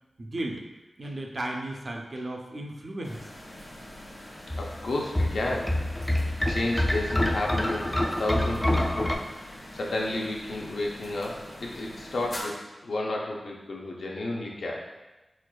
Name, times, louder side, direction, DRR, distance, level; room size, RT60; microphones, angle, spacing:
voice 1, 0.2-0.6 1.0-3.3, right 1 dB, 50° right, 1 dB, 0.4 m, -35 dB
sound 1, 3.0-12.4, left 1 dB, 50° left, 0.7 m, -44 dB
sound 2, 4.5-9.1, left 1 dB, 15° left, 0.3 m, -26 dB
voice 2, 4.6-6.1 6.5-9.2 9.7-12.6 12.8-14.7, left 2 dB, 90° left, -1 dB, 0.5 m, -32 dB
4.3 x 2.3 x 2.2 m, 1.1 s
wide cardioid pair, 70°, 0 cm